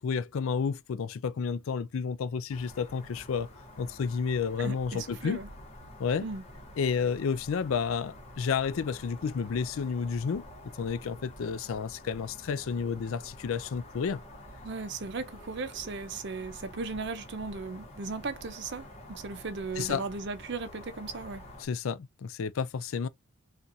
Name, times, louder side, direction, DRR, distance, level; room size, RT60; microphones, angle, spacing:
voice 1, 0.0-3.5 3.8-5.4 6.0-6.3 6.8-10.4 10.8-14.2 19.8-20.1 21.6-23.1, left 6 dB, 65° left, 0.4 m, -31 dB
sound 1, 2.5-21.7, left 1 dB, 30° left, 1.2 m, -48 dB
voice 2, 4.6-5.5 6.2-6.4 14.6-21.4, right 4 dB, 55° right, 0.6 m, -37 dB
3.9 x 2.4 x 2.7 m
head